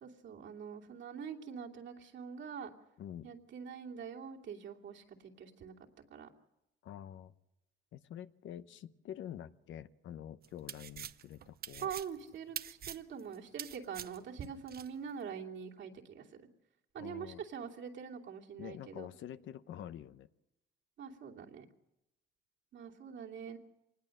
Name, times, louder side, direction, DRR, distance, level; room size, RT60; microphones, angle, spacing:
voice 1, 0.0-2.7 3.2-5.7 6.1-6.3 11.8-16.3 16.9-19.1 21.0-21.6 22.7-23.6, right 7 dB, 70° right, -1 dB, 2.8 m, -44 dB
voice 2, 3.0-3.3 6.8-7.3 7.9-11.9 17.0-17.4 18.6-20.3, left 10 dB, 75° left, 13 dB, 0.9 m, -47 dB
sound 1, 10.4-14.9, right 9 dB, 50° right, 0.7 m, -45 dB
25.0 x 20.0 x 6.6 m, 0.90 s
cardioid pair, 90°, 20 cm